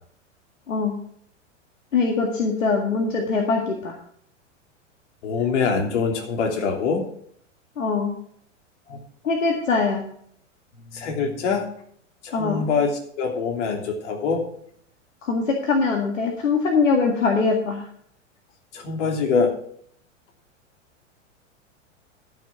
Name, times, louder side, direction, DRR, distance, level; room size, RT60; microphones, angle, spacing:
voice 1, 1.9-4.0 7.8-8.1 9.2-10.1 12.3-12.7 15.2-17.8, left 4 dB, 80° left, 2 dB, 2.0 m, -22 dB
voice 2, 5.2-7.0 8.9-9.0 10.9-11.7 12.2-14.4 18.7-19.5, left 5 dB, 65° left, 2 dB, 3.1 m, -24 dB
13.0 x 6.4 x 6.0 m, 0.64 s
hypercardioid pair, 100°, 38 cm